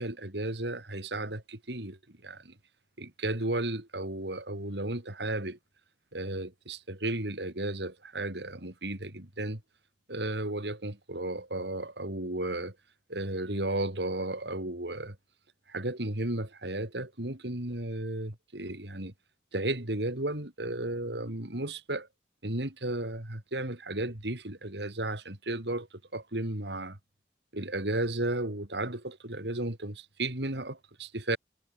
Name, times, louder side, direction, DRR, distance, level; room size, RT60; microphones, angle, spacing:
voice 1, 0.0-2.5 3.0-5.6 6.1-9.6 10.1-12.8 13.1-15.2 15.7-19.1 19.5-22.1 22.4-25.9 26.1-27.0 27.5-31.4, right 1 dB, 80° right, 3.6 m, -34 dB
head